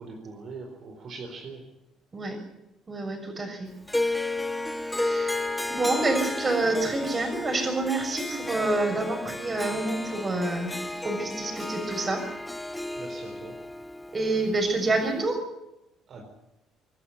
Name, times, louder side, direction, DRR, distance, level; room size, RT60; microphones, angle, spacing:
voice 1, 0.0-1.6 5.5-5.7 12.9-13.5 16.1-16.2, right 4 dB, 55° right, 2 dB, 4.2 m, -41 dB
voice 2, 2.9-3.7 5.0-10.7 11.0-12.2 14.1-15.4, right 2 dB, 30° right, 5 dB, 6.8 m, -28 dB
Harp, 3.9-15.2, left 2 dB, 5° left, 1.0 m, -33 dB
25.5 x 12.0 x 9.8 m, 0.93 s
cardioid pair, 90°, 0 cm